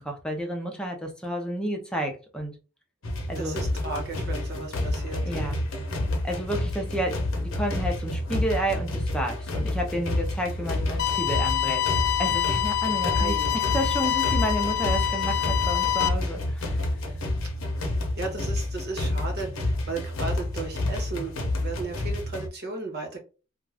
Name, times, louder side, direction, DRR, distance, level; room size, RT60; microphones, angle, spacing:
voice 1, 0.0-2.5 3.3-3.6 5.2-5.6 6.2-11.8 12.2-16.8, right 1 dB, 5° left, 0.7 m, -31 dB
sound 1, 3.0-22.5, left 1 dB, 85° left, 0.8 m, -29 dB
voice 2, 3.4-5.6 13.1-13.6 17.8-23.2, right 3 dB, 55° right, 1.1 m, -35 dB
sound 2, 11.0-16.1, left 12 dB, 55° left, 0.4 m, -26 dB
2.4 x 2.3 x 3.3 m
head